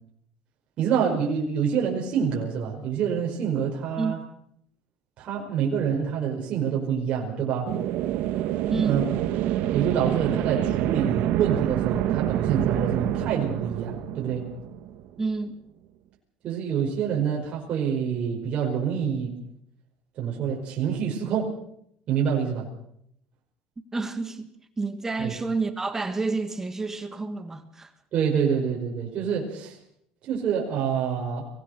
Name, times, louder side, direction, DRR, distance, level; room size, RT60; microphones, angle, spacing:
voice 1, 0.8-4.2 5.2-7.7 8.8-9.0 9.7-14.5 16.4-19.3 20.2-21.5 22.1-22.7 25.2-25.3 28.1-29.8 30.2-31.5, right 7 dB, 45° right, 5.2 m, -26 dB
sound 1, 7.7-15.2, right 13 dB, 65° right, 1.5 m, -27 dB
voice 2, 8.7-9.0 15.2-15.6 23.9-24.5 24.8-27.9, right 3 dB, 15° right, 1.6 m, -29 dB
23.5 x 18.0 x 6.6 m
cardioid pair, 125°, 3 cm